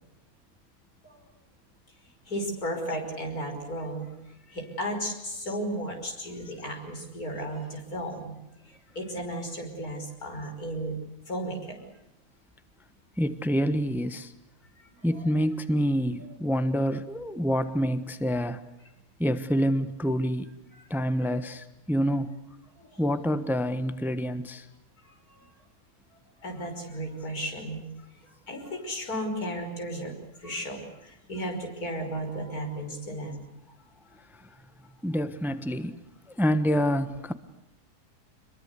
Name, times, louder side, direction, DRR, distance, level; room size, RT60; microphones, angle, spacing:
voice 1, 2.3-4.1 4.5-8.3 8.7-11.0 11.3-11.8 14.8-15.3 16.2-16.3 22.8-23.0 25.0-25.5 26.4-27.9 28.2-33.4, right 1 dB, 90° left, 3 dB, 6.0 m, -35 dB
voice 2, 13.2-14.3 15.0-18.6 19.2-20.5 20.9-22.3 23.0-24.7 35.0-36.0 36.3-37.3, equal, ahead, 11 dB, 1.0 m, -27 dB
26.5 x 22.0 x 8.3 m, 0.90 s
omnidirectional pair, 1.5 m